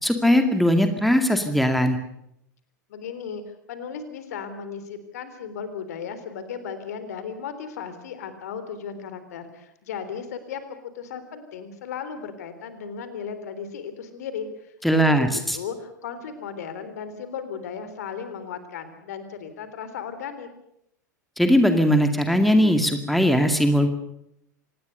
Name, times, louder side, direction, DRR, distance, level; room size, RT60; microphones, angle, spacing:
voice 1, 0.0-2.0 14.8-15.6 21.4-23.9, equal, ahead, 7 dB, 2.2 m, -19 dB
voice 2, 2.9-20.5, left 7 dB, 60° left, 11 dB, 3.6 m, -36 dB
26.0 x 19.5 x 6.8 m, 0.77 s
figure-of-eight pair, 90°, 10 cm